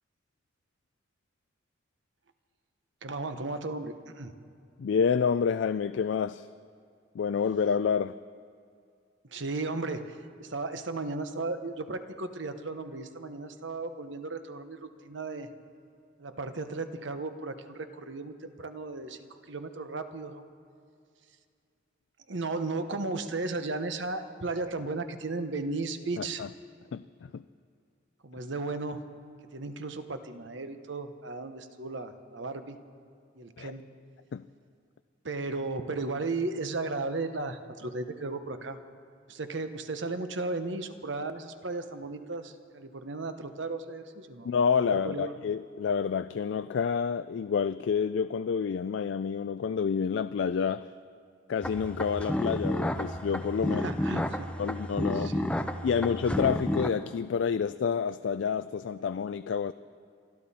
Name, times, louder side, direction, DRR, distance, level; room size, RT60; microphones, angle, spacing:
voice 1, 3.0-4.3 9.3-15.5 16.2-20.5 22.3-26.4 28.2-29.1 29.5-32.8 33.4-33.8 35.2-38.8 39.3-44.5 44.8-45.3 53.7-54.5 55.1-55.6 55.9-56.0, right 3 dB, 65° right, 9 dB, 1.0 m, -35 dB
voice 2, 4.8-6.5 7.1-8.2 26.2-26.5 26.9-27.0 27.3-27.4 33.6-33.7 34.3-34.4 44.4-50.9 51.5-53.9 54.1-54.2 54.6-55.4 55.8-59.7, left 6 dB, 65° left, 12 dB, 0.3 m, -28 dB
sound 1, 51.6-56.9, left 1 dB, 5° left, 0.5 m, -31 dB
28.0 x 12.0 x 4.2 m, 2.3 s
head